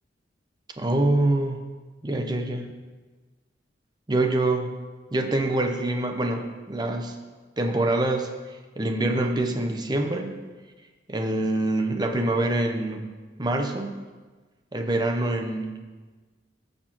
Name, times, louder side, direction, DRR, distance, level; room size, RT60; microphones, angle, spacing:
voice 1, 0.8-1.6 2.0-2.7 4.1-4.7 5.1-7.2 7.6-8.3 8.8-10.4 11.1-13.1 13.4-14.1 14.7-15.8, right 2 dB, 25° right, 4 dB, 0.7 m, -25 dB
15.5 x 6.7 x 3.0 m, 1.3 s
head